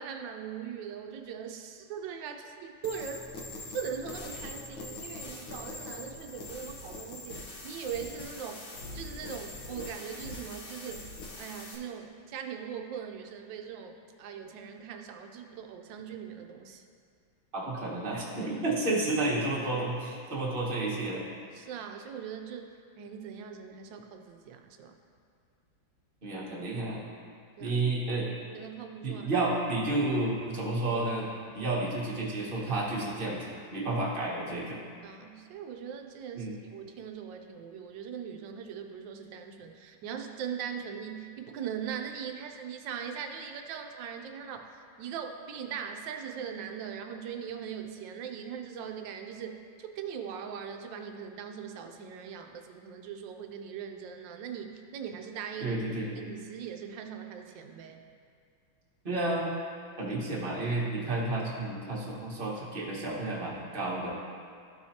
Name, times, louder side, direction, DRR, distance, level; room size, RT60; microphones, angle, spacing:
voice 1, 0.0-3.5 3.7-8.6 8.9-11.1 11.4-13.9 14.2-16.8 21.5-24.9 27.6-27.8 28.5-29.3 30.5-30.7 35.0-44.7 45.0-55.8 56.2-58.0 60.1-60.2, right 7 dB, 75° right, 5 dB, 1.2 m, -40 dB
sound 1, 2.8-11.7, left 2 dB, 85° left, 1.8 m, -43 dB
voice 2, 17.5-21.2 26.2-27.0 27.6-28.3 29.0-31.3 31.5-34.8 36.3-36.5 55.6-56.1 59.0-59.5 60.0-64.2, right 2 dB, 30° right, -5 dB, 1.3 m, -31 dB
13.5 x 4.7 x 2.8 m, 2.2 s
omnidirectional pair, 2.2 m